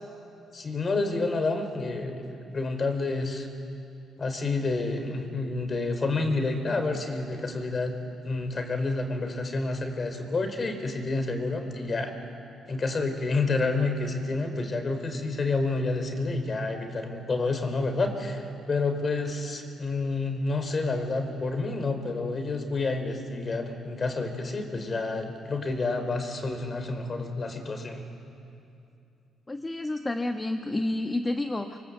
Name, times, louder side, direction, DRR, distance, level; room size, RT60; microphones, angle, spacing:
voice 1, 0.5-2.2 2.5-3.5 4.2-8.0 8.2-12.1 12.7-28.0, left 3 dB, 40° left, 7 dB, 4.0 m, -29 dB
voice 2, 29.5-31.8, left 2 dB, 20° left, 5 dB, 1.2 m, -29 dB
26.5 x 24.0 x 7.9 m, 2.7 s
cardioid pair, 90°, 0 cm